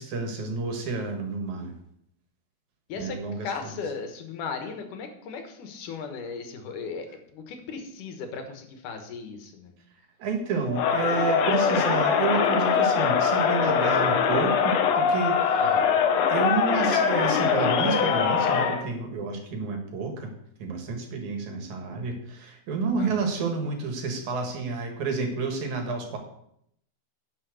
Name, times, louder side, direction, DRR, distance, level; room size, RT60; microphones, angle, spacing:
voice 1, 0.0-1.7 3.0-3.5 10.2-15.6 16.3-20.3 20.6-26.2, right 4 dB, 70° right, 3 dB, 3.0 m, -30 dB
voice 2, 3.4-7.1 7.3-9.8 15.6-16.0 23.0-23.3, left 5 dB, 85° left, 5 dB, 2.8 m, -37 dB
Crowd, 10.7-18.9, left 7 dB, 70° left, 1.8 m, -22 dB
10.5 x 5.8 x 6.5 m, 0.73 s
omnidirectional pair, 3.6 m